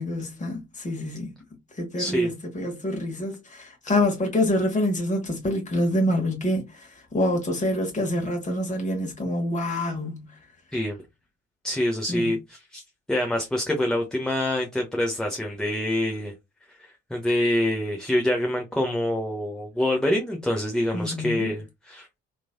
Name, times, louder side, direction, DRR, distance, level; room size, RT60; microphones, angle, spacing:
voice 1, 0.0-1.3 1.8-10.2 12.1-12.3 20.9-21.5, left 1 dB, 20° left, 1.2 m, -26 dB
voice 2, 2.0-2.3 10.7-11.0 11.6-12.8 13.1-16.3 16.8-22.1, left 1 dB, ahead, 0.6 m, -26 dB
3.1 x 2.6 x 2.2 m
figure-of-eight pair, 45°, 34 cm